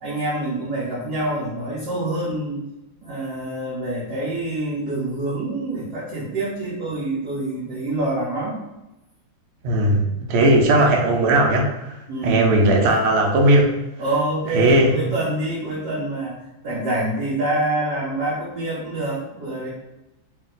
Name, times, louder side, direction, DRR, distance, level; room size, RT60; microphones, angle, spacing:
voice 1, 0.0-2.6 3.0-8.6 12.1-12.4 14.0-19.7, right 2 dB, 60° right, -6 dB, 1.2 m, -26 dB
voice 2, 9.6-11.9 12.2-13.8 14.5-15.0, right 1 dB, 75° right, 1 dB, 1.4 m, -17 dB
3.2 x 2.8 x 3.7 m, 0.95 s
omnidirectional pair, 2.4 m